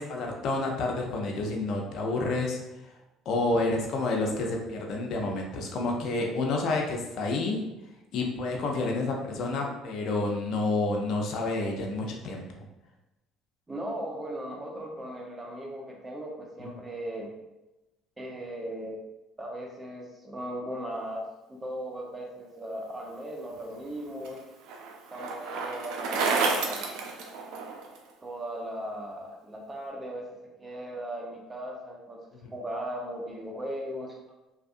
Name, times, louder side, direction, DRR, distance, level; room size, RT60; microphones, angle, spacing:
voice 1, 0.0-2.9 3.3-7.6 8.1-12.4 16.6-16.7 32.3-32.5, left 2 dB, 60° left, 0 dB, 0.5 m, -29 dB
voice 2, 13.7-17.3 18.2-19.0 19.4-21.2 21.5-24.4 25.1-26.9 28.2-30.3 30.6-32.2 32.5-34.2, right 1 dB, 20° right, -1 dB, 0.8 m, -37 dB
Bicycle, 23.6-28.0, right 4 dB, 75° right, 0.4 m, -31 dB
2.6 x 2.3 x 2.5 m, 0.98 s
supercardioid pair, 80°, 0 cm